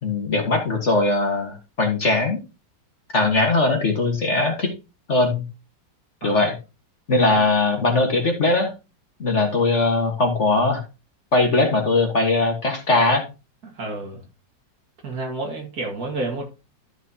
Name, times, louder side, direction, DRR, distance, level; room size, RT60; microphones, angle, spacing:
voice 1, 0.0-2.4 3.1-4.7 5.1-5.4 6.2-6.6 7.1-8.7 9.2-10.8 11.3-13.2, left 3 dB, 40° left, 3 dB, 1.7 m, -20 dB
voice 2, 13.6-14.2 15.0-16.4, right 2 dB, 55° right, 1 dB, 2.6 m, -30 dB
13.0 x 6.0 x 2.9 m, 0.28 s
omnidirectional pair, 2.0 m